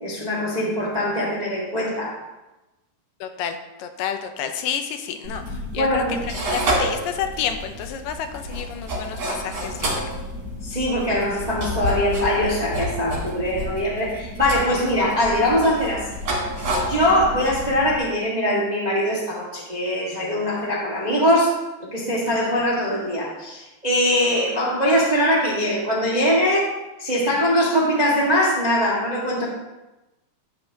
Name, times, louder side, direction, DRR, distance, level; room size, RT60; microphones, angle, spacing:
voice 1, 0.0-2.1 5.7-6.2 10.6-16.1 16.9-21.5 21.9-26.7 27.0-29.4, equal, 25° right, -4 dB, 0.9 m, -22 dB
voice 2, 3.2-10.2, left 8 dB, 85° left, 7 dB, 2.4 m, -30 dB
sound 1, 5.2-18.0, equal, 55° right, 4.1 m, -29 dB
12.0 x 9.1 x 2.9 m, 1.0 s
omnidirectional pair, 3.8 m